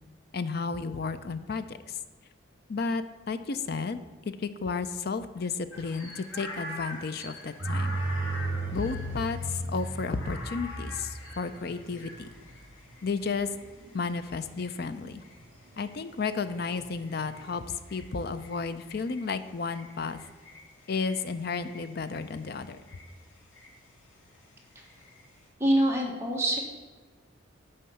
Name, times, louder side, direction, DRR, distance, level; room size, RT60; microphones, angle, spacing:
voice 1, 0.3-2.0 2.7-4.0 4.2-7.9 8.7-12.3 13.0-13.5 13.9-15.2 15.8-20.2 20.9-22.8, left 4 dB, 50° left, 11 dB, 0.5 m, -32 dB
sound 1, 5.7-25.5, left 1 dB, 85° left, 2.1 m, -47 dB
sound 2, 7.6-14.4 15.0-15.5 15.8-15.9 16.3-17.6, right 2 dB, 65° right, 2.1 m, -35 dB
voice 2, 25.6-26.6, right 1 dB, 15° right, -2 dB, 1.4 m, -25 dB
10.0 x 4.4 x 6.9 m, 1.3 s
head